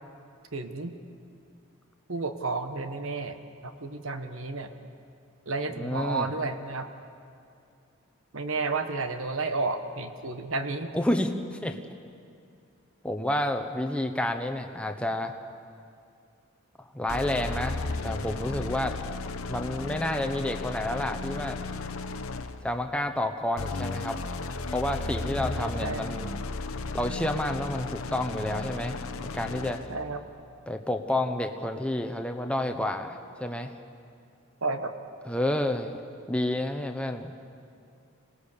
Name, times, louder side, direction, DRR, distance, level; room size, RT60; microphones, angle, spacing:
voice 1, 0.5-0.9 2.1-4.7 5.5-6.9 8.3-10.9 25.6-26.0 29.9-30.2 34.6-34.9, right 3 dB, 70° right, 8 dB, 1.4 m, -32 dB
voice 2, 5.8-6.3 10.9-11.8 13.0-15.3 16.9-19.0 19.5-21.6 22.6-24.2 24.7-26.3 26.9-29.8 30.7-33.7 35.3-36.0 36.3-37.3, left 1 dB, 5° left, 5 dB, 0.9 m, -30 dB
sound 1, 17.1-22.7 23.6-30.0, left 3 dB, 80° left, 1.0 m, -34 dB
25.5 x 18.5 x 6.8 m, 2.4 s
head